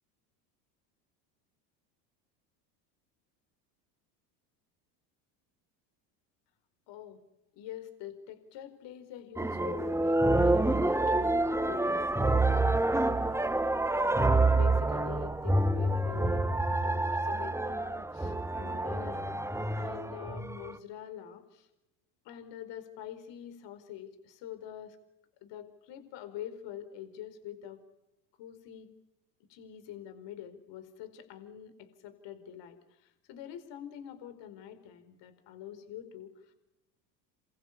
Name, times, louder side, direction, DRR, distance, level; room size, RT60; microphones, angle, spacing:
voice 1, 6.9-7.2 7.5-13.5 13.9-19.4 19.7-21.7 22.2-25.0 25.4-27.8 28.4-28.9 29.5-36.5, left 10 dB, 60° left, 10 dB, 4.6 m, -45 dB
sound 1, 9.4-20.7, right 2 dB, 5° right, 1.5 m, -28 dB
28.0 x 22.5 x 8.5 m, 0.92 s
hypercardioid pair, 90°, 50 cm